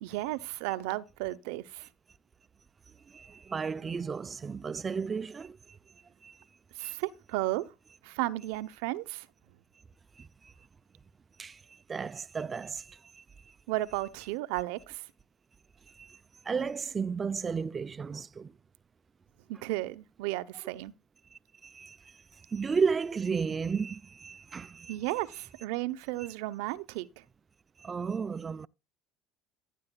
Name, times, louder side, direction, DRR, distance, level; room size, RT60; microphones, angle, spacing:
voice 1, 0.0-1.9 6.8-7.7 8.0-9.3 13.7-15.1 19.5-20.9 24.9-27.2, right 17 dB, 80° right, 0.8 m, -34 dB
voice 2, 3.1-5.8 6.2-6.4 6.8-7.0 10.2-10.5 11.4-13.6 15.9-18.5 21.3-25.0 27.8-28.7, right 5 dB, 30° right, 0.4 m, -34 dB
15.0 x 7.6 x 2.3 m
supercardioid pair, 90°, 0 cm